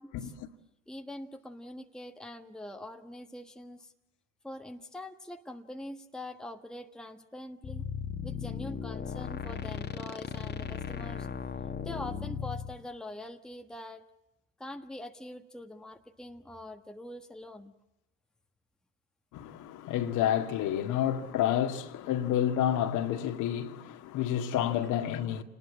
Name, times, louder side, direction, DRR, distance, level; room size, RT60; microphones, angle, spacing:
voice 1, 0.9-3.9 4.4-7.9 8.2-11.3 11.8-14.1 14.6-17.7, left 1 dB, ahead, 1.4 m, -44 dB
sound 1, 7.6-12.7, left 7 dB, 25° left, 1.9 m, -37 dB
voice 2, 19.3-25.4, left 10 dB, 45° left, 2.0 m, -29 dB
28.5 x 20.0 x 8.6 m
figure-of-eight pair, 75°, 40 cm